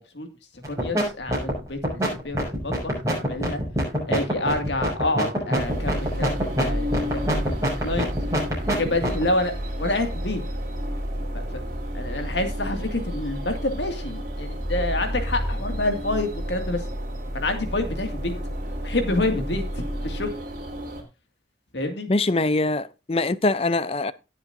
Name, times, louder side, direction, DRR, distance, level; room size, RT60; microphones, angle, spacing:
voice 1, 0.5-3.6 4.1-8.1 8.7-9.5 9.8-10.4 11.3-11.6 11.9-16.8 17.3-18.3 18.8-19.6 20.0-20.4 21.7-22.1, left 2 dB, 80° left, 2.1 m, -28 dB
sound 1, 0.6-1.0 1.3-9.2, equal, 20° right, 6.4 m, -24 dB
sound 2, 5.6-21.0, equal, 50° right, 3.5 m, -31 dB
voice 2, 22.1-24.1, left 2 dB, 35° left, 0.5 m, -23 dB
18.0 x 7.6 x 2.6 m
head